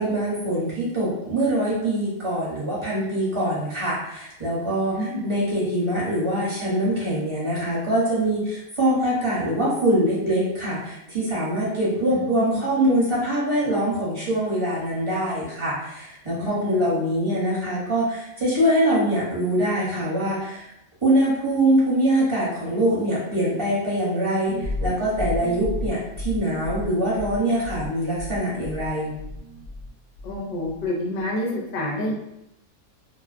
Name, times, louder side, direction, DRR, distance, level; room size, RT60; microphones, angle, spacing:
voice 1, 0.0-20.7 21.0-29.1, right 1 dB, 25° right, -8 dB, 0.8 m, -23 dB
voice 2, 4.9-5.2 12.1-12.6 16.4-16.8 30.2-32.1, left 1 dB, 55° left, -2 dB, 0.6 m, -29 dB
sound 1, 24.5-29.9 30.2-30.9, left 2 dB, 85° left, 1.1 m, -33 dB
2.7 x 2.0 x 2.4 m, 0.84 s
omnidirectional pair, 1.5 m